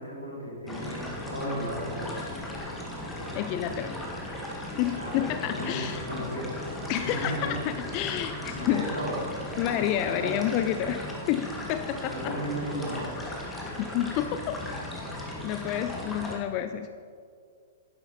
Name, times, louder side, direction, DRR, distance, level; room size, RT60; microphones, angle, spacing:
voice 1, 0.0-2.2 4.9-5.3 5.6-6.5 6.9-7.5 8.5-9.2 10.1-10.3 12.1-13.1, equal, 90° left, -3 dB, 3.3 m, -35 dB
reef-emptying-water, 0.7-16.4, left 1 dB, 10° left, 1.8 m, -37 dB
voice 2, 3.3-4.0 4.8-6.0 6.9-8.9 9.6-11.0 11.3-12.4 13.8-14.6 15.4-16.9, left 11 dB, 35° left, 9 dB, 0.5 m, -29 dB
11.5 x 11.0 x 4.2 m, 2.2 s
figure-of-eight pair, 110°, 0 cm